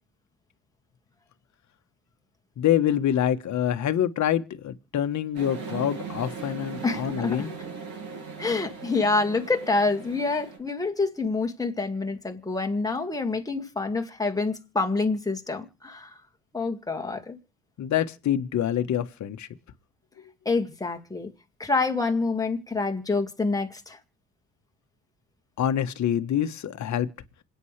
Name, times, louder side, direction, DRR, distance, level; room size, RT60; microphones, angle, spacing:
voice 1, 2.6-7.5 17.8-19.5 25.6-27.1, left 10 dB, 50° left, 1.3 m, -26 dB
sound 1, 5.3-10.6, right 5 dB, 75° right, 6.8 m, -38 dB
voice 2, 6.8-7.5 8.4-16.2 16.5-17.4 20.5-21.3 21.6-24.0, left 3 dB, 10° left, 2.0 m, -27 dB
27.0 x 9.2 x 3.3 m
cardioid pair, 100°, 36 cm